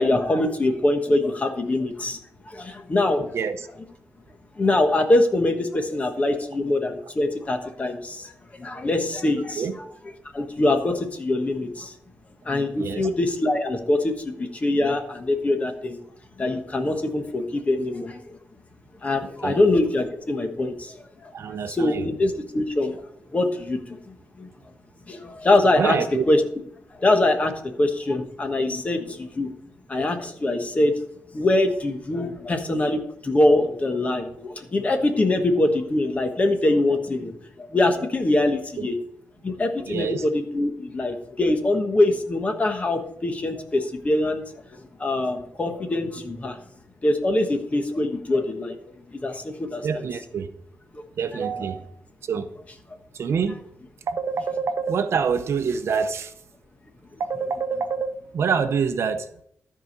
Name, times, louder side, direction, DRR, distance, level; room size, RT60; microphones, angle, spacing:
voice 1, 0.0-2.2 2.5-3.4 4.6-9.6 10.3-11.9 12.4-16.0 16.4-18.4 19.0-21.0 21.7-23.0 23.3-24.5 25.1-26.0 26.3-26.4 27.0-27.5 27.8-29.5 29.9-30.9 31.3-38.9 39.4-44.4 44.7-46.6 47.0-48.8 49.1-49.9 50.9-51.0, left 2 dB, 30° left, 1.3 m, -23 dB
voice 2, 3.2-3.7 9.6-9.8 12.8-13.1 19.2-19.6 21.3-22.1 25.8-26.2 38.8-38.9 39.9-40.2 49.8-50.5 51.2-51.8 52.2-52.5 53.1-53.6 54.1-56.3 57.2-59.3, right 6 dB, 60° right, 0.7 m, -26 dB
13.0 x 4.9 x 5.4 m
wide cardioid pair, 135°, 5 cm